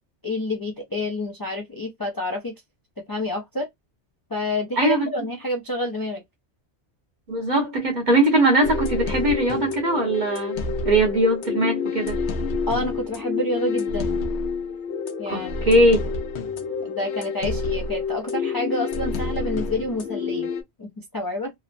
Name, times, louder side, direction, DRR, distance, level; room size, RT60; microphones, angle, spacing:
voice 1, 0.2-2.5 3.1-3.7 4.3-6.2 12.7-14.2 15.2-15.7 16.9-20.5 20.8-21.5, left 1 dB, 40° left, 0.3 m, -28 dB
voice 2, 4.8-5.1 7.3-10.5 10.8-12.2 15.3-16.0, right 1 dB, 45° right, 1.1 m, -20 dB
sound 1, 8.6-20.6, left 4 dB, 75° left, 0.8 m, -28 dB
3.0 x 2.0 x 2.5 m
omnidirectional pair, 1.1 m